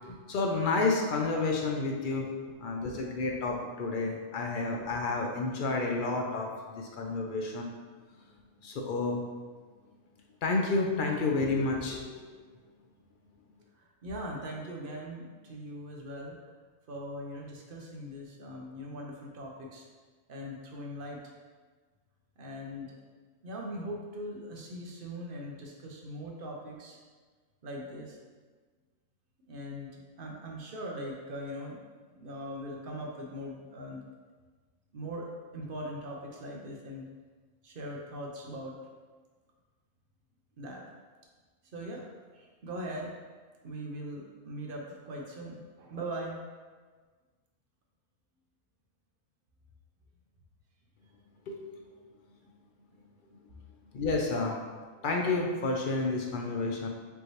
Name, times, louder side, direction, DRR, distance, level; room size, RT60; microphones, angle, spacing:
voice 1, 0.0-2.3 2.6-6.5 6.7-7.7 8.6-9.2 10.4-12.3 51.5-51.6 53.9-54.6 55.0-56.9, left 3 dB, 65° left, 0 dB, 0.5 m, -30 dB
voice 2, 13.8-16.4 16.9-19.8 20.3-21.2 22.4-22.9 23.4-27.0 27.6-28.2 29.5-29.9 30.2-31.8 32.1-34.0 34.9-37.1 37.6-38.8 40.6-40.8 41.7-42.0 42.3-43.1 43.6-46.4 51.9-52.1, equal, 50° right, -1 dB, 0.8 m, -40 dB
5.2 x 3.1 x 3.0 m, 1.4 s
omnidirectional pair, 1.4 m